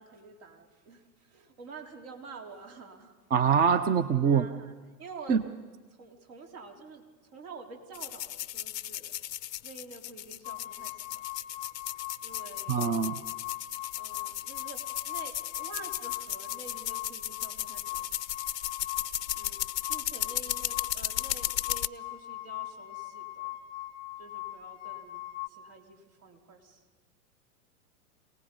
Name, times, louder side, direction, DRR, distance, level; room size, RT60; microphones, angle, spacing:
voice 1, 0.0-3.2 4.2-5.6 6.0-7.0 7.3-9.2 9.6-11.0 12.2-13.5 13.9-18.0 19.4-19.6 19.9-23.6 24.2-26.8, right 4 dB, 60° right, 2 dB, 3.6 m, -48 dB
voice 2, 3.3-4.5 5.3-5.4 12.7-13.2, right 7 dB, 20° right, 13 dB, 0.6 m, -24 dB
sound 1, 7.9-21.9, left 12 dB, 85° left, 0.6 m, -35 dB
sound 2, 10.4-25.5, left 16 dB, 40° left, 0.6 m, -40 dB
27.0 x 18.5 x 5.3 m, 1.3 s
hypercardioid pair, 105°, 48 cm